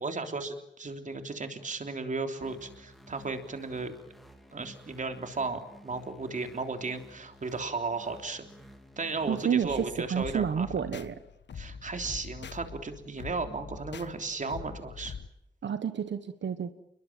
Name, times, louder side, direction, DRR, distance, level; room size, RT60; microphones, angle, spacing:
voice 1, 0.0-3.9 4.5-8.5 9.0-10.7 11.5-15.2, right 3 dB, 45° right, 6 dB, 3.4 m, -35 dB
sound 1, 2.4-9.9, equal, ahead, 3.1 m, -53 dB
voice 2, 9.3-11.2 15.6-16.7, right 8 dB, 85° right, 10 dB, 1.3 m, -30 dB
sound 2, 9.6-15.3, left 6 dB, 75° left, 1.4 m, -44 dB
29.5 x 22.5 x 7.6 m, 0.79 s
wide cardioid pair, 155°, 18 cm